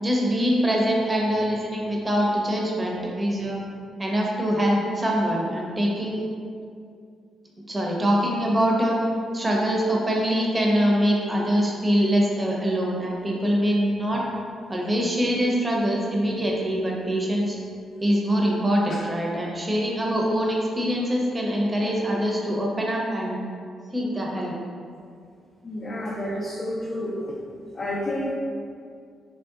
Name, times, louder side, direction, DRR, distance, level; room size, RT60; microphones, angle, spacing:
voice 1, 0.0-3.6 4.0-6.2 7.7-9.0 9.3-14.2 14.7-17.6 18.0-23.4 23.9-24.5, equal, 25° right, -2 dB, 0.6 m, -24 dB
voice 2, 25.6-27.4 27.7-28.3, left 1 dB, 40° left, -6 dB, 0.5 m, -30 dB
3.2 x 2.7 x 2.3 m, 2.3 s
supercardioid pair, 65°, 0 cm